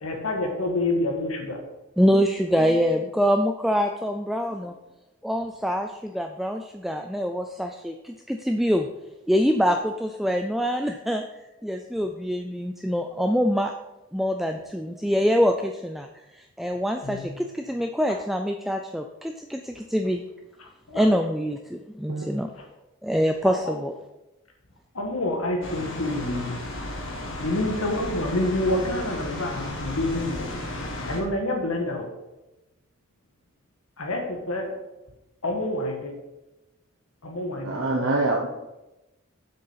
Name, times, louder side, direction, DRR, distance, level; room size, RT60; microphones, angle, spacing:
voice 1, 0.0-1.6 17.0-17.4 20.9-21.1 22.5-22.7 23.4-23.7 24.9-26.6 27.4-30.5 31.0-32.1 34.0-34.7 35.4-36.1 37.2-38.1, left 1 dB, 90° left, 2 dB, 1.7 m, -28 dB
voice 2, 2.0-4.7 5.2-8.9 9.3-11.2 11.6-13.7 14.1-20.2 20.9-22.5 23.0-23.9, equal, ahead, 4 dB, 0.3 m, -25 dB
sound 1, 25.6-31.2, left 1 dB, 65° left, 1.8 m, -34 dB
voice 3, 37.6-38.5, right 2 dB, 85° right, -1 dB, 1.1 m, -25 dB
7.8 x 6.5 x 5.7 m, 0.98 s
head